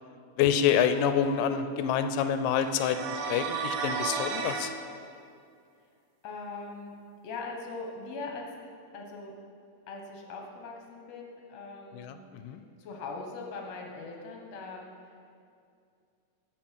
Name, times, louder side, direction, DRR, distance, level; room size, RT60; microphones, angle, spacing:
voice 1, 0.4-4.7 11.9-12.6, left 8 dB, 80° left, 9 dB, 2.1 m, -27 dB
sound 1, 2.6-4.8, right 5 dB, 85° right, 2.4 m, -33 dB
voice 2, 6.2-6.9 7.2-8.5 8.9-9.3 9.9-12.2 12.8-15.3, left 3 dB, 65° left, 1 dB, 1.9 m, -41 dB
8.5 x 6.3 x 7.3 m, 2.4 s
omnidirectional pair, 3.9 m